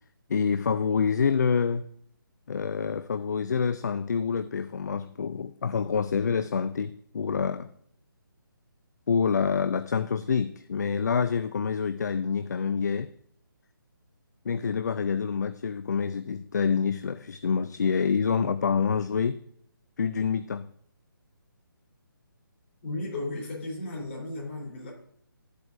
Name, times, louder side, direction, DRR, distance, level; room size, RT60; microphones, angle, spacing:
voice 1, 0.3-1.9 2.5-7.7 9.1-13.1 14.5-19.4 20.0-20.7, left 6 dB, 50° left, 0.4 m, -27 dB
voice 2, 22.8-24.9, left 2 dB, 35° left, 3.4 m, -34 dB
12.5 x 8.2 x 2.5 m
figure-of-eight pair, 145°, 12 cm